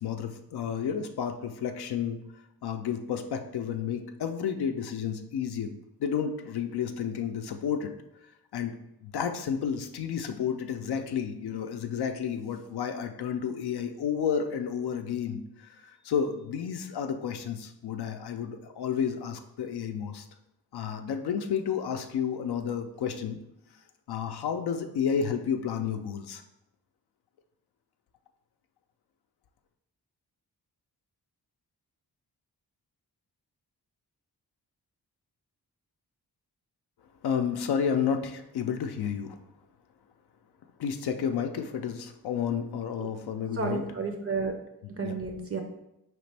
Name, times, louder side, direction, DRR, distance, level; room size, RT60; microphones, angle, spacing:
voice 1, 0.0-2.2 2.6-5.7 6.0-7.9 8.5-8.8 9.0-20.2 20.7-23.4 24.1-26.4 37.2-39.4 40.8-43.8 45.0-45.1, left 7 dB, 85° left, 6 dB, 0.5 m, -31 dB
voice 2, 43.5-44.5 44.9-45.6, right 4 dB, 40° right, 3 dB, 0.4 m, -31 dB
5.0 x 3.1 x 3.3 m, 0.84 s
wide cardioid pair, 175°, 38 cm